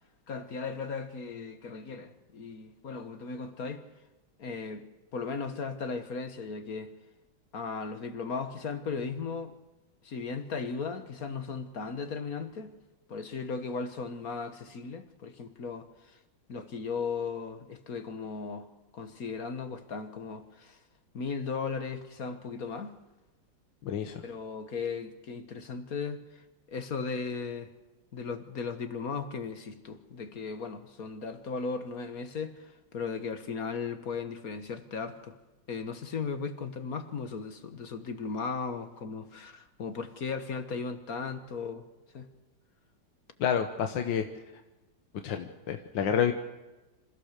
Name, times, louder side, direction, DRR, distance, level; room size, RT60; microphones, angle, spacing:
voice 1, 0.3-3.8 4.4-4.8 5.1-6.9 7.5-9.5 10.0-12.7 13.1-16.2 16.5-18.7 18.9-20.8 21.1-22.9 24.2-27.7 28.1-35.4 35.7-41.8 42.1-42.3, left 5 dB, 55° left, 1.6 m, -36 dB
voice 2, 23.8-24.2 43.4-44.2 45.2-46.3, left 8 dB, 80° left, 1.8 m, -29 dB
27.0 x 15.5 x 6.7 m
omnidirectional pair, 2.0 m